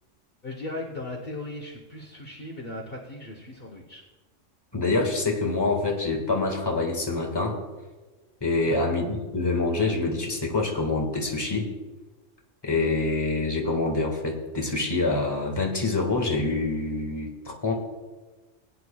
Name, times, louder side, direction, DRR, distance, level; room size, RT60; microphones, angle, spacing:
voice 1, 0.4-4.0 8.6-8.9, left 2 dB, 50° left, 1 dB, 1.2 m, -37 dB
voice 2, 4.7-7.6 8.4-11.7 12.6-17.7, left 3 dB, 20° left, 1 dB, 1.6 m, -26 dB
20.5 x 9.3 x 2.3 m, 1.2 s
omnidirectional pair, 1.3 m